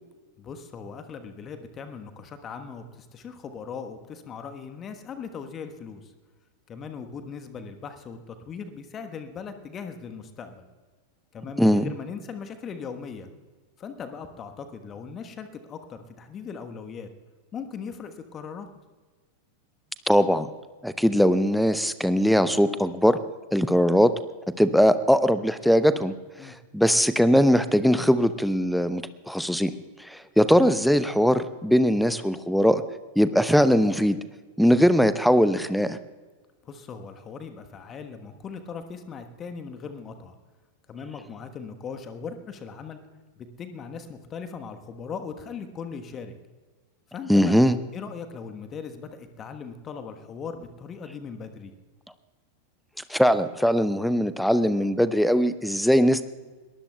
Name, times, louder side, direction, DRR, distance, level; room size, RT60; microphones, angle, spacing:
voice 1, 0.4-6.1 6.7-10.6 11.3-13.3 13.8-17.1 17.5-18.7 26.4-26.5 36.6-40.3 40.9-43.0 43.4-46.3 47.1-47.6 47.9-51.7, left 6 dB, 25° left, 7 dB, 1.2 m, -39 dB
voice 2, 11.6-11.9 20.1-20.5 20.8-23.2 23.5-24.1 24.6-26.1 26.4-29.7 30.1-32.8 33.2-34.2 34.6-36.0 47.3-47.8 53.1-56.2, equal, ahead, 14 dB, 0.7 m, -20 dB
22.0 x 19.0 x 2.3 m, 1.4 s
figure-of-eight pair, 90°, 0 cm